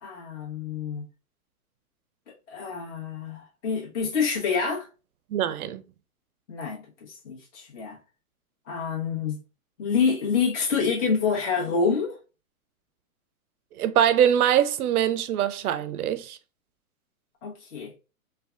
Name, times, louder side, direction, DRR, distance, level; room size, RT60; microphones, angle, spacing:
voice 1, 0.0-1.1 2.5-4.9 6.5-8.0 8.7-9.4 9.8-12.2 17.4-17.9, left 5 dB, 55° left, 1.4 m, -27 dB
voice 2, 5.3-5.8 13.8-16.4, right 10 dB, 85° right, 0.5 m, -23 dB
3.2 x 2.3 x 2.4 m
hypercardioid pair, 150°, 43 cm